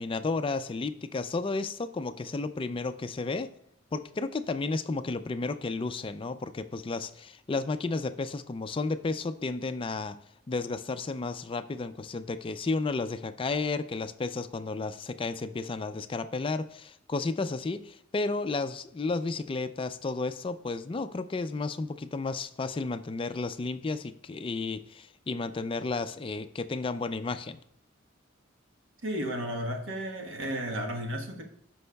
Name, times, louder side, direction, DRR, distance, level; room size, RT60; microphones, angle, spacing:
voice 1, 0.0-3.5 3.9-10.2 10.5-27.6, left 3 dB, 25° left, 10 dB, 0.4 m, -32 dB
voice 2, 29.0-31.4, equal, 85° right, 2 dB, 1.2 m, -33 dB
13.0 x 5.4 x 2.3 m, 0.73 s
head